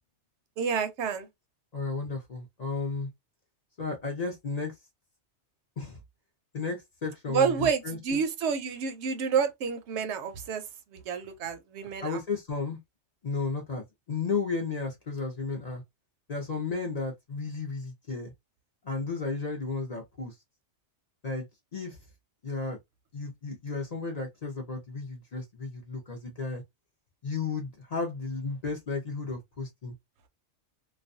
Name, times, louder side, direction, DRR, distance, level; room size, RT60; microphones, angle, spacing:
voice 1, 0.6-1.3 7.3-10.6 10.9-12.2, right 6 dB, 75° right, 0.8 m, -29 dB
voice 2, 1.7-3.1 3.8-4.7 5.8-6.0 6.5-8.2 12.0-12.8 13.2-15.8 16.3-18.3 18.8-20.3 21.2-21.5 21.7-22.0 22.4-22.8 23.1-26.6 27.2-29.9, left 4 dB, 45° left, 0.6 m, -33 dB
2.4 x 2.2 x 2.5 m
omnidirectional pair, 1.2 m